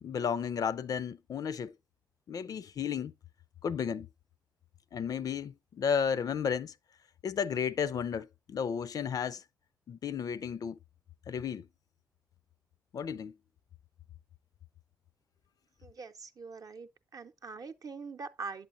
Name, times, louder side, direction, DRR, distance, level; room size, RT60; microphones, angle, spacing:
voice 1, 0.0-1.7 2.3-3.1 3.6-4.1 4.9-6.7 7.2-9.4 9.9-10.8 11.3-11.6 12.9-13.3, left 7 dB, 50° left, 0.4 m, -33 dB
voice 2, 15.8-18.7, right 4 dB, 50° right, 0.7 m, -43 dB
8.0 x 7.7 x 2.5 m
hypercardioid pair, 40°, 8 cm